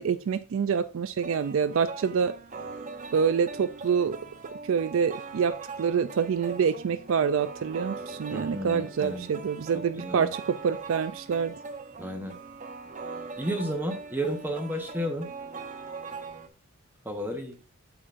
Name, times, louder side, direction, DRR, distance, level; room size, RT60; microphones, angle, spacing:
voice 1, 0.0-2.3 3.1-4.2 4.7-11.5, right 6 dB, 60° right, 11 dB, 0.3 m, -26 dB
sound 1, 1.2-16.5, right 4 dB, 35° right, 0.8 m, -41 dB
voice 2, 8.3-9.3 9.7-10.3 12.0-12.4 13.4-15.3 17.0-17.6, right 1 dB, 10° right, 3 dB, 0.9 m, -32 dB
8.6 x 7.2 x 2.5 m, 0.31 s
head